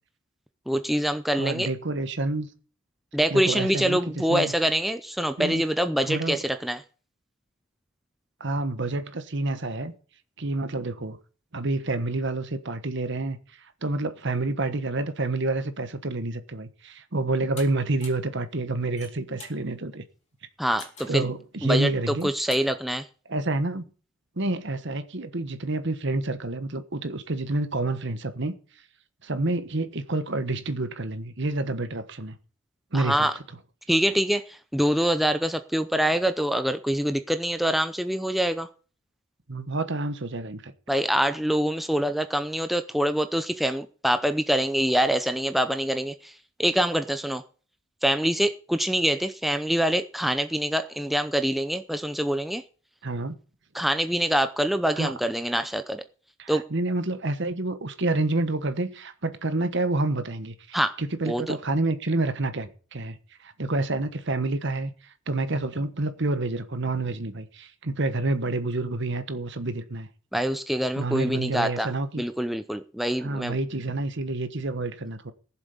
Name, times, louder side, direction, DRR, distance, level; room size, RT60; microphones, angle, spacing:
voice 1, 0.7-1.7 3.1-6.8 20.6-21.2 21.6-23.1 32.9-33.3 33.9-38.7 40.9-46.3 46.6-47.4 48.0-52.6 53.7-56.0 56.5-56.7 60.7-61.0 61.2-61.5 70.3-71.9 72.2-73.6, equal, ahead, 0.6 m, -25 dB
voice 2, 1.3-2.5 3.3-4.0 4.3-4.5 5.4-5.6 6.0-6.4 8.4-9.9 10.4-11.2 11.5-20.0 21.1-22.3 23.3-23.9 24.4-28.5 29.2-32.4 32.9-33.3 39.5-40.7 53.0-53.4 55.0-55.1 56.4-70.1 71.0-72.2 73.2-75.3, right 2 dB, 60° right, 1.3 m, -28 dB
sound 1, 17.6-17.7 18.0-18.3 18.8-19.6 20.8-21.2 22.0-22.7, left 4 dB, 35° left, 3.6 m, -44 dB
15.5 x 7.3 x 7.0 m
head